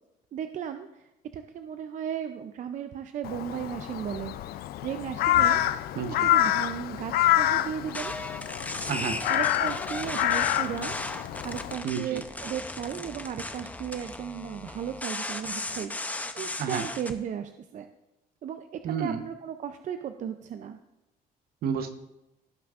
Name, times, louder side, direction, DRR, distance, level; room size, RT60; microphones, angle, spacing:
voice 1, 0.3-4.5 4.8-5.6 6.1-8.2 9.3-11.0 11.4-17.9 18.4-20.8, right 8 dB, 50° right, 8 dB, 0.5 m, -35 dB
Crow, 3.2-11.7, left 13 dB, 65° left, 0.4 m, -27 dB
voice 2, 6.0-6.3 8.9-9.2 11.8-12.2 16.6-16.8 18.8-19.2 21.6-22.0, right 7 dB, 65° right, 8 dB, 0.9 m, -30 dB
sound 1, 7.9-17.1, left 2 dB, 10° left, 0.6 m, -36 dB
16.5 x 5.9 x 2.5 m, 0.92 s
cardioid pair, 110°, 17 cm